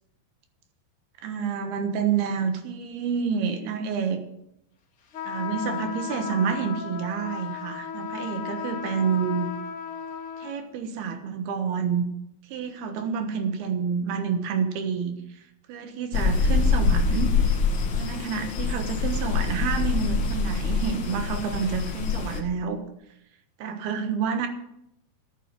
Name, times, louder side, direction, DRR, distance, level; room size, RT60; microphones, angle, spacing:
voice 1, 1.2-4.2 5.2-9.5 10.4-12.0 12.5-15.4 15.7-17.6 17.9-22.8 23.6-24.5, right 6 dB, 90° right, 6 dB, 3.3 m, -28 dB
sound 1, 5.1-10.6, left 7 dB, 55° left, 1.5 m, -35 dB
sound 2, 16.1-22.4, left 4 dB, 85° left, 1.0 m, -25 dB
13.0 x 8.8 x 6.4 m, 0.79 s
omnidirectional pair, 4.3 m